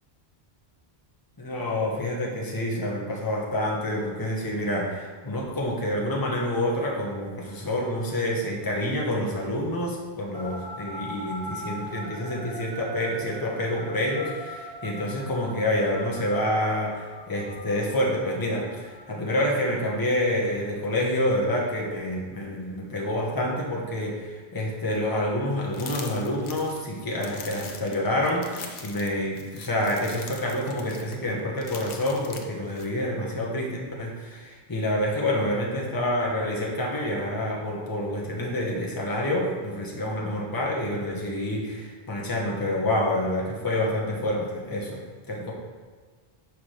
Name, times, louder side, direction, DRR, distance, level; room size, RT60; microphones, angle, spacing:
voice 1, 1.4-45.0 45.3-45.5, left 1 dB, 20° left, -2 dB, 1.0 m, -28 dB
sound 1, 10.3-19.8, equal, 5° left, 1.5 m, -41 dB
sound 2, 25.7-32.9, left 5 dB, 80° left, 1.0 m, -42 dB
6.0 x 4.7 x 4.9 m, 1.5 s
omnidirectional pair, 1.1 m